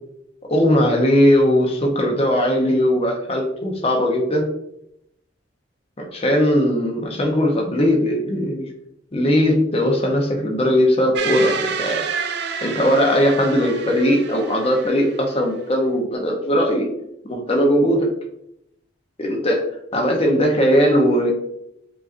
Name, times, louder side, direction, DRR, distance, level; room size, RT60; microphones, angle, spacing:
voice 1, 0.5-4.5 6.0-8.7 9.1-12.0 12.6-16.9 17.2-18.1 19.2-19.6 19.9-21.3, equal, 30° left, 1 dB, 0.7 m, -19 dB
sound 1, 11.2-15.6, right 5 dB, 60° right, 0.5 m, -29 dB
6.8 x 2.6 x 2.5 m, 0.79 s
head